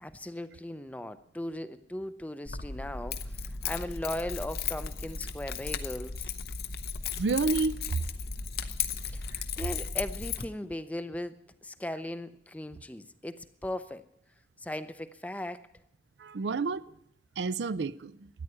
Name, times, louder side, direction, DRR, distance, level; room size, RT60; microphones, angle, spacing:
voice 1, 0.0-6.3 9.0-14.0 14.6-15.7, left 1 dB, 10° left, 0.5 m, -38 dB
Keys jangling, 2.5-10.4, left 6 dB, 60° left, 0.8 m, -35 dB
voice 2, 7.1-8.0 9.3-9.4 16.2-16.9 17.4-18.3, right 4 dB, 80° right, 0.5 m, -30 dB
13.5 x 9.8 x 9.7 m
head